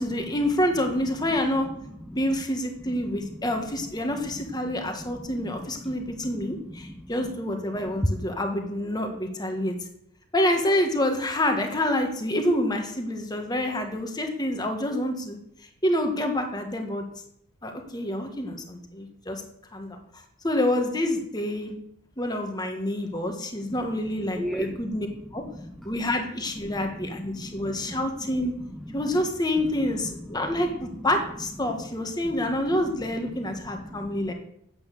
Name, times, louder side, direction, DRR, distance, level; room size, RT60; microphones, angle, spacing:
voice 1, 0.0-1.7 2.1-9.7 10.3-15.4 15.8-17.0 17.6-19.4 19.7-20.0 20.4-21.7 22.2-25.1 25.3-25.4 25.8-28.5 28.9-34.3, left 1 dB, 20° left, 4 dB, 1.5 m, -27 dB
voice 2, 2.8-3.4 4.1-7.1 7.7-7.9 23.8-25.1 25.4-25.9 26.5-29.1 29.6-29.7 30.0-31.1 31.7-31.8 32.2-32.6 33.3-34.3, equal, ahead, 3 dB, 0.6 m, -40 dB
8.9 x 8.2 x 6.6 m, 0.73 s
head